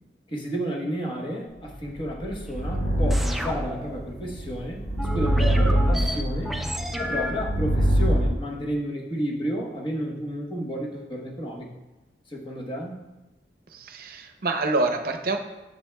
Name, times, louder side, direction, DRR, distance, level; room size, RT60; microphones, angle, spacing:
voice 1, 0.3-4.9 5.1-6.6 7.0-11.7 12.3-13.0, equal, 30° left, -1 dB, 1.1 m, -31 dB
sound 1, 1.8-8.3, equal, 70° left, 2.3 m, -25 dB
sound 2, 3.1-4.2 5.0-7.5, equal, ahead, 0.4 m, -32 dB
voice 2, 13.7-15.4, right 3 dB, 55° right, 5 dB, 0.7 m, -26 dB
10.0 x 7.0 x 2.3 m, 1.1 s
head